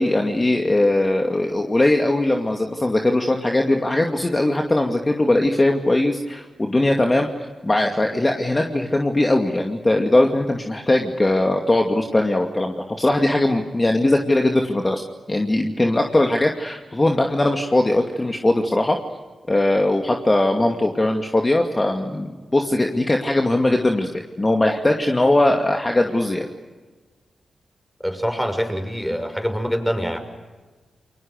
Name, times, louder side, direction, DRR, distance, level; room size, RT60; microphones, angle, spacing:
voice 1, 0.0-7.3 7.6-15.0 15.3-19.0 19.5-24.1 24.4-26.5, left 1 dB, 25° left, 3 dB, 2.4 m, -20 dB
voice 2, 28.0-30.2, equal, 5° left, 6 dB, 5.9 m, -24 dB
29.0 x 23.0 x 6.7 m, 1.3 s
cardioid pair, 50°, 0 cm